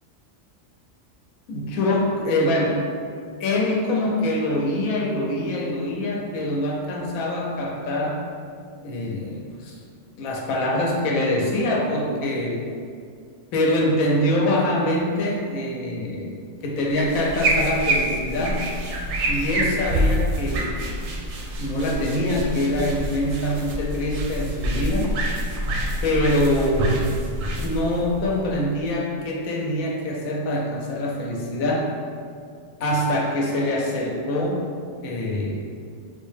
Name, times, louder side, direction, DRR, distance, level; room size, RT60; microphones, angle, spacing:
voice 1, 1.5-2.9 3.4-8.2 8.8-9.8 10.2-12.7 13.5-18.7 19.3-20.9 21.6-25.1 26.0-27.0 27.6-31.9 32.8-34.6 35.0-35.7, left 1 dB, 90° left, -2 dB, 1.1 m, -24 dB
sound 1, 16.9-28.8, right 1 dB, 65° right, 0.8 m, -26 dB
3.9 x 2.2 x 3.1 m, 2.3 s
omnidirectional pair, 1.4 m